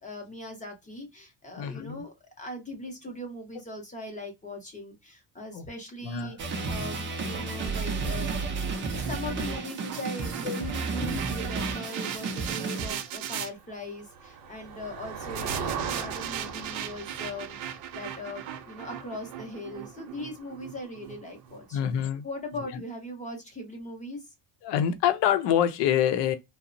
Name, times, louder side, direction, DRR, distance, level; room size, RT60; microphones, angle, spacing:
voice 1, 0.0-8.4 8.7-21.9 22.2-24.3, left 1 dB, 15° left, 0.5 m, -40 dB
voice 2, 1.6-2.0 5.5-5.7 6.0-6.4 10.4-10.6 11.0-11.2 21.7-22.3 22.7-22.8 24.6-26.4, left 10 dB, 70° left, 0.6 m, -26 dB
sound 1, 6.4-12.9, right 4 dB, 30° right, 0.3 m, -32 dB
sound 2, 7.6-13.5 15.4-21.6, right 10 dB, 85° right, 0.6 m, -39 dB
Motor vehicle (road), 13.5-21.3, right 6 dB, 50° right, 0.7 m, -40 dB
2.8 x 2.0 x 2.4 m
cardioid pair, 170°, 44 cm